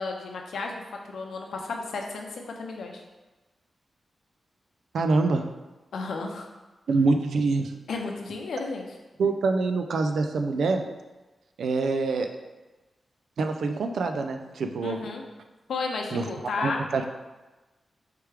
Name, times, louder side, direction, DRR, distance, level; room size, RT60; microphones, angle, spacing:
voice 1, 0.0-3.0 5.9-6.5 7.9-8.9 14.8-15.2 15.7-16.8, left 4 dB, 90° left, 2 dB, 0.6 m, -33 dB
voice 2, 4.9-5.5 6.9-7.8 9.2-10.9 11.6-12.3 13.4-15.1 16.1-16.3 16.6-17.1, right 3 dB, 85° right, 6 dB, 0.3 m, -25 dB
4.6 x 3.4 x 3.3 m, 1.1 s
wide cardioid pair, 120°, 0 cm